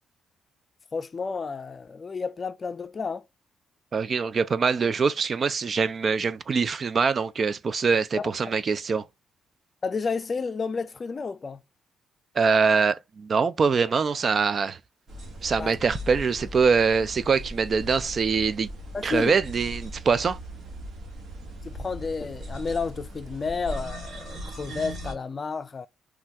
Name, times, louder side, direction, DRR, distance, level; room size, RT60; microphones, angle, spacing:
voice 1, 0.9-3.2 8.2-8.3 9.8-11.6 15.6-15.8 18.9-19.4 21.6-25.9, left 4 dB, 35° left, 0.4 m, -31 dB
voice 2, 3.9-9.0 12.4-14.8 15.4-18.7 19.0-20.4, right 5 dB, 45° right, 0.3 m, -23 dB
sound 1, 15.1-25.1, equal, 65° right, 1.2 m, -39 dB
3.3 x 2.3 x 2.8 m
cardioid pair, 90°, 0 cm